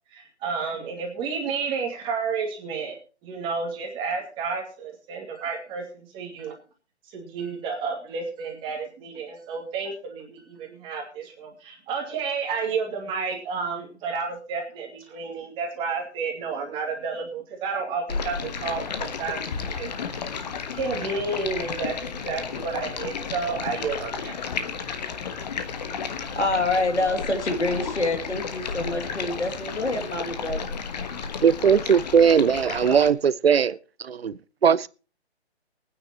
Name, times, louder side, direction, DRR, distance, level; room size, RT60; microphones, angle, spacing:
voice 1, 0.1-6.5 7.1-20.2 20.7-24.4, right 5 dB, 15° right, 2.4 m, -31 dB
Stream, 18.1-33.1, left 6 dB, 40° left, 1.4 m, -33 dB
voice 2, 26.3-30.8, left 2 dB, 90° left, 2.7 m, -26 dB
voice 3, 31.4-34.9, right 7 dB, 65° right, 0.6 m, -20 dB
23.5 x 9.6 x 3.0 m
figure-of-eight pair, 145°, 33 cm